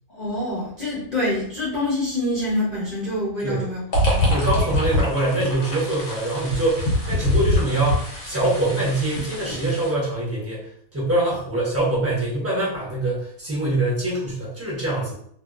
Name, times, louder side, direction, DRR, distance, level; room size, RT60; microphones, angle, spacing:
voice 1, 0.1-3.8 4.1-4.3, left 1 dB, 35° left, -9 dB, 1.0 m, -26 dB
sound 1, 3.9-9.9, left 1 dB, 75° left, 1.3 m, -24 dB
voice 2, 4.3-15.1, right 2 dB, 10° right, -7 dB, 0.9 m, -24 dB
2.8 x 2.6 x 2.4 m, 0.65 s
omnidirectional pair, 1.5 m